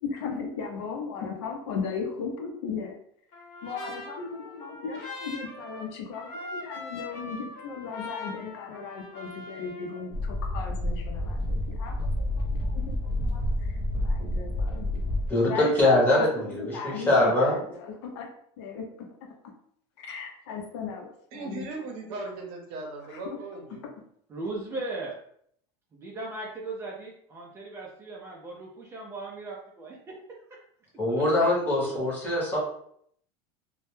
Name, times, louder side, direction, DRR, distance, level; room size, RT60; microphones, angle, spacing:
voice 1, 0.0-3.0 3.6-13.0 13.2-15.0 15.4-18.3 18.6-19.1 20.0-21.7 23.1-23.4, left 5 dB, 85° left, 2 dB, 0.6 m, -37 dB
Trumpet, 3.3-10.0, left 2 dB, 60° left, 0.9 m, -41 dB
sound 1, 10.1-15.3, left 1 dB, 40° left, 0.4 m, -29 dB
voice 2, 15.3-17.6 31.0-32.6, left 1 dB, 15° left, -5 dB, 0.8 m, -23 dB
voice 3, 21.3-23.9 31.4-32.1, right 3 dB, 60° right, 1 dB, 0.7 m, -38 dB
voice 4, 24.3-25.1 25.9-30.2 31.1-31.2, right 2 dB, 20° right, -2 dB, 0.3 m, -37 dB
2.1 x 2.0 x 3.0 m, 0.66 s
cardioid pair, 165°, 14 cm